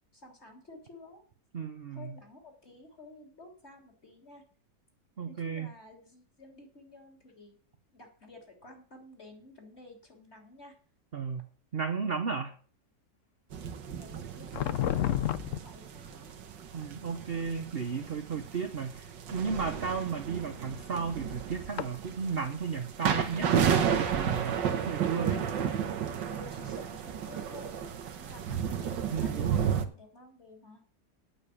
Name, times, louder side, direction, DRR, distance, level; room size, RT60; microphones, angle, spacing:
voice 1, 0.1-1.2 1.9-4.4 5.3-7.6 7.9-10.8 13.9-14.8 15.2-16.3 26.3-30.8, left 2 dB, 35° left, 2 dB, 3.6 m, -52 dB
voice 2, 1.5-2.2 5.2-5.7 11.1-11.4 11.7-12.6 16.7-25.6 29.1-29.8, right 5 dB, 45° right, 7 dB, 0.9 m, -34 dB
sound 1, 13.5-29.9, right 8 dB, 90° right, 1.8 m, -33 dB
sound 2, 14.5-15.6 17.2-17.4 19.4-19.6 21.8-22.0, left 11 dB, 60° left, 0.8 m, -29 dB
9.2 x 7.0 x 8.5 m, 0.43 s
omnidirectional pair, 1.9 m